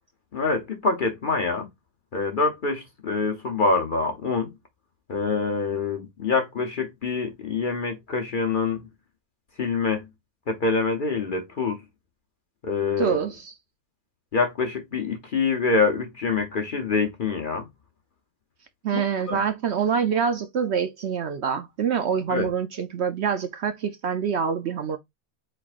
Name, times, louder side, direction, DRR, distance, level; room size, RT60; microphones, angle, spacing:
voice 1, 0.3-1.7 2.1-4.5 5.1-8.8 9.6-10.0 10.5-11.8 12.6-13.2 14.3-17.7 18.9-19.0 19.3-19.4 22.3-22.5, left 4 dB, 45° left, 0.7 m, -25 dB
voice 2, 13.0-13.5 18.8-25.0, right 7 dB, 60° right, 0.8 m, -26 dB
4.5 x 4.2 x 2.4 m
omnidirectional pair, 1.5 m